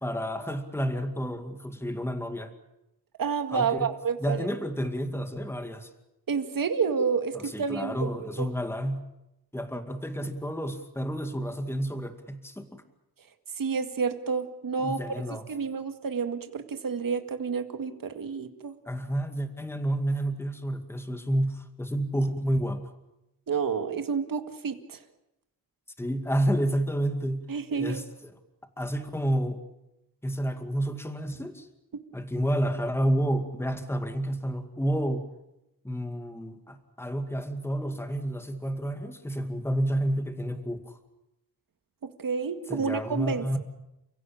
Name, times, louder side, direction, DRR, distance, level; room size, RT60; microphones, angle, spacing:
voice 1, 0.0-2.5 3.5-3.9 4.2-5.9 7.3-9.0 9.5-12.8 14.8-15.5 18.9-22.8 26.0-27.4 27.7-28.3 28.8-29.6 30.2-31.7 32.1-35.2 35.8-41.0 42.7-43.6, equal, 5° left, 7 dB, 2.2 m, -30 dB
voice 2, 3.2-4.5 6.3-8.1 8.4-8.5 13.6-15.0 15.5-18.7 23.5-25.0 27.5-28.0 42.2-43.6, right 5 dB, 65° right, 8 dB, 2.0 m, -29 dB
30.0 x 17.0 x 8.8 m, 0.89 s
wide cardioid pair, 140°, 36 cm